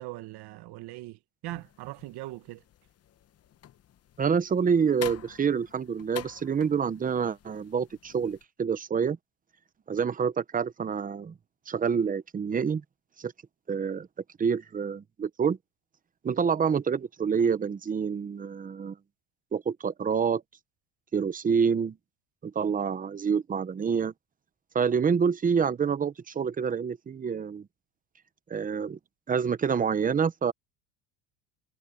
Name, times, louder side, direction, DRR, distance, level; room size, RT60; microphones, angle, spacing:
voice 1, 0.0-2.6, right 17 dB, 50° right, 1.0 m, -40 dB
sound 1, 1.4-8.4, left 11 dB, 30° left, 0.8 m, -47 dB
voice 2, 4.2-9.2 9.9-11.3 11.7-12.8 13.2-13.3 13.7-14.1 14.4-15.6 16.2-19.0 19.5-20.4 21.1-22.0 22.4-24.1 24.7-27.7 28.5-29.0 29.3-30.5, right 6 dB, 15° right, 0.7 m, -27 dB
cardioid pair, 145°, 50 cm